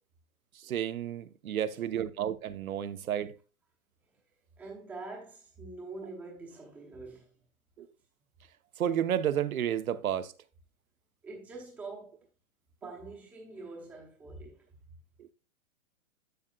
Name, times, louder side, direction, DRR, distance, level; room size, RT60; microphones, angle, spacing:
voice 1, 0.5-3.3 7.8-7.9 8.8-10.3 15.2-15.3, right 10 dB, 75° right, 1.0 m, -31 dB
voice 2, 1.4-1.9 4.6-7.3 11.2-12.3 12.8-14.7, right 3 dB, 5° right, 0.8 m, -45 dB
11.5 x 6.6 x 2.3 m
hypercardioid pair, 175°, 42 cm